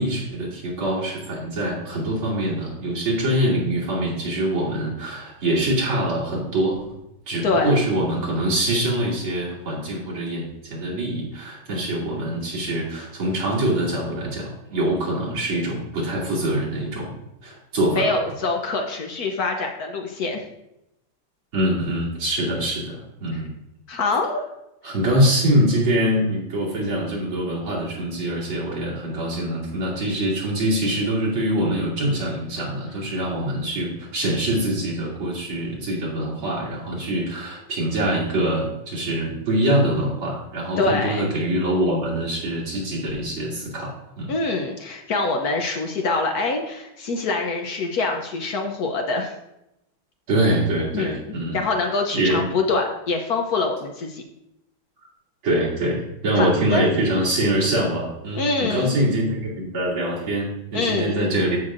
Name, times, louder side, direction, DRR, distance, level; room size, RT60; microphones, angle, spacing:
voice 1, 0.0-6.8 7.3-17.1 17.4-18.1 21.5-23.5 24.8-43.9 44.2-44.3 50.3-51.6 52.1-52.4 55.4-61.6, right 1 dB, 75° right, -6 dB, 3.4 m, -24 dB
voice 2, 7.4-7.8 17.9-20.4 23.9-24.4 40.8-41.3 44.3-49.3 50.9-51.2 51.5-54.2 56.4-56.9 58.4-58.9 60.7-61.2, left 3 dB, 60° left, 3 dB, 1.0 m, -24 dB
13.5 x 5.8 x 2.5 m, 0.88 s
omnidirectional pair, 2.3 m